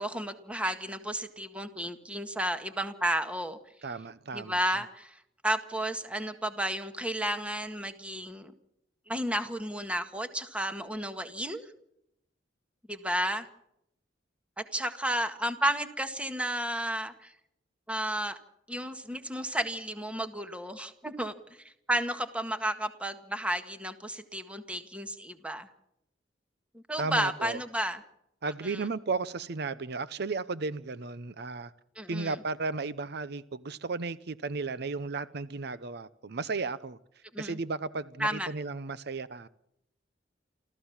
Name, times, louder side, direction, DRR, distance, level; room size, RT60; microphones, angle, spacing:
voice 1, 0.0-3.6 4.3-5.2 5.4-8.5 9.1-11.7 12.9-13.5 14.6-17.3 17.9-18.4 18.7-21.3 21.9-25.7 26.7-28.0 28.6-28.8 31.9-32.4 37.3-37.6 38.2-38.5, right 1 dB, 5° right, 1.8 m, -32 dB
voice 2, 3.8-4.6 27.0-27.6 28.4-31.7 32.1-37.0 37.4-39.5, right 4 dB, 60° right, 0.7 m, -34 dB
27.5 x 14.5 x 7.3 m
head